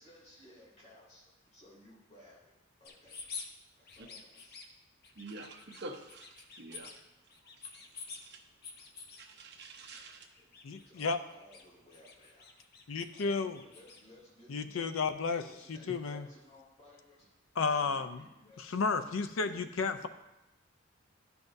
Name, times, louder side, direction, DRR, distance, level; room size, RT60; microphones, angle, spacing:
voice 1, 0.0-2.4 2.8-3.2 3.8-4.5 10.0-12.5 13.1-14.9 15.3-17.3 17.6-19.1 19.4-20.1, left 1 dB, 35° left, -6 dB, 2.8 m, -58 dB
sound 1, 2.8-3.5 3.8-4.7 5.0-5.8 6.1-7.0 7.3-8.2 8.6-9.2 9.8-10.0 10.3-11.6 11.9-14.0, left 5 dB, 50° left, 0.8 m, -48 dB
voice 2, 5.1-6.9 7.6-7.9 8.2-8.4 9.2-10.3, right 2 dB, 60° right, 1 dB, 1.0 m, -47 dB
voice 3, 10.6-11.2 12.9-13.6 14.5-15.4 15.7-16.3 17.6-18.2 18.6-20.1, left 4 dB, 80° left, 10 dB, 0.5 m, -32 dB
12.0 x 5.8 x 2.7 m, 0.98 s
head